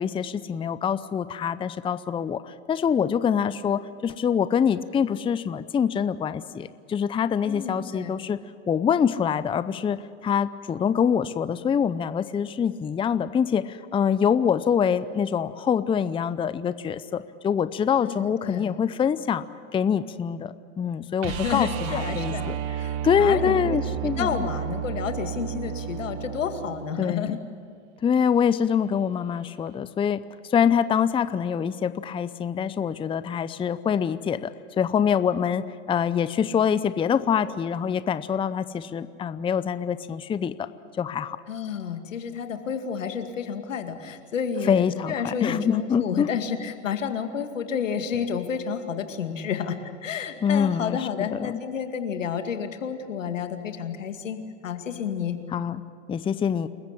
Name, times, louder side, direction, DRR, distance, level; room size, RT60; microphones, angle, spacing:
voice 1, 0.0-8.4 8.7-19.4 19.7-22.8 23.0-24.4 27.0-27.3 28.0-30.2 30.5-40.7 41.0-41.4 44.6-46.3 50.4-51.6 55.5-55.8 56.1-56.7, left 7 dB, 15° left, 14 dB, 0.6 m, -25 dB
voice 2, 7.4-8.1 18.0-18.7 21.2-27.4 41.5-49.8 50.0-55.4, left 7 dB, 85° left, 7 dB, 2.3 m, -30 dB
sound 1, 21.2-27.2 29.7-29.8, right 9 dB, 50° right, 1.2 m, -32 dB
28.0 x 15.0 x 9.9 m, 2.3 s
hypercardioid pair, 105°, 37 cm